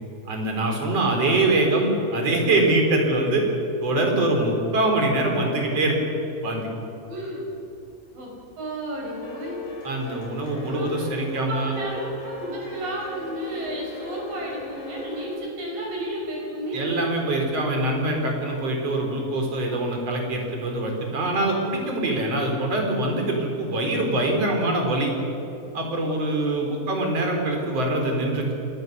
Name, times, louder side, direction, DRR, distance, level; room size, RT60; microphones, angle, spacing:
voice 1, 0.3-3.4 3.8-6.0 6.4-6.7 9.8-11.7 16.7-25.1 25.7-28.5, right 2 dB, 40° right, 2 dB, 4.7 m, -24 dB
voice 2, 7.1-7.4 8.1-8.3 8.6-9.6 10.7-10.9 11.5-17.0 26.8-27.0, right 1 dB, 65° right, -2 dB, 7.7 m, -32 dB
sound 1, 7.7-8.1 8.4-15.3, left 2 dB, 85° left, 6.8 m, -38 dB
26.0 x 20.0 x 6.8 m, 3.0 s
omnidirectional pair, 4.2 m